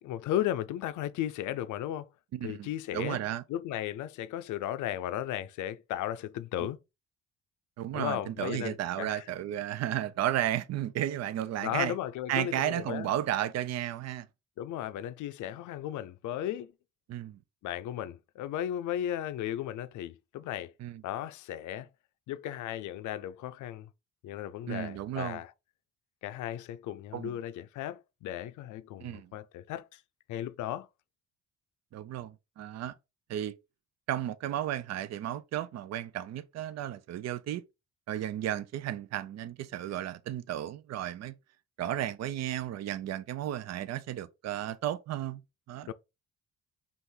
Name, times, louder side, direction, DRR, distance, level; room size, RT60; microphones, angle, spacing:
voice 1, 0.0-2.1 2.4-3.2 3.5-6.8 7.9-9.2 11.6-13.1 14.6-16.7 17.6-20.7 21.0-21.9 22.3-23.9 24.2-25.5 26.2-30.0 30.3-30.9 45.9-46.0, left 12 dB, 75° left, 0.5 m, -35 dB
voice 2, 2.3-3.4 7.8-11.9 12.3-14.3 17.1-17.4 20.8-21.0 24.7-25.4 27.1-27.4 29.0-29.3 31.9-32.9 33.3-33.5 34.1-37.6 38.1-41.3 41.8-45.4 45.7-45.9, right 12 dB, 60° right, 0.5 m, -33 dB
5.4 x 2.5 x 3.8 m
cardioid pair, 90°, 30 cm